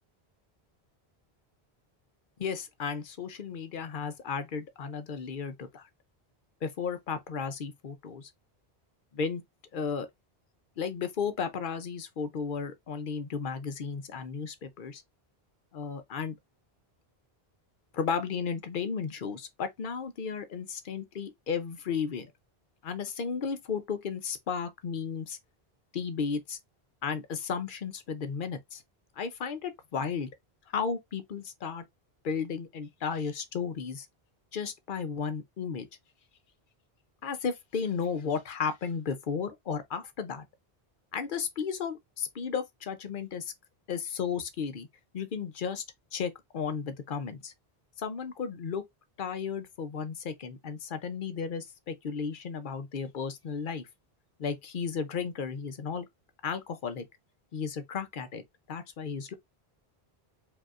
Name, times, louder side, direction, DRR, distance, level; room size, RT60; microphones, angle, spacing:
voice 1, 2.4-5.9 6.6-8.3 9.1-9.4 9.7-10.1 10.8-15.0 15.7-16.4 17.9-22.3 22.8-25.4 25.9-26.6 27.0-28.8 29.2-30.3 30.7-31.8 32.2-34.1 34.5-35.9 37.2-40.5 41.1-43.5 43.9-44.9 45.1-45.8 46.1-47.5 48.0-48.9 49.2-53.8 54.4-56.1 56.4-57.1 57.5-58.4 58.7-59.3, left 6 dB, 60° left, 0.8 m, -34 dB
5.0 x 2.7 x 2.4 m
omnidirectional pair, 1.1 m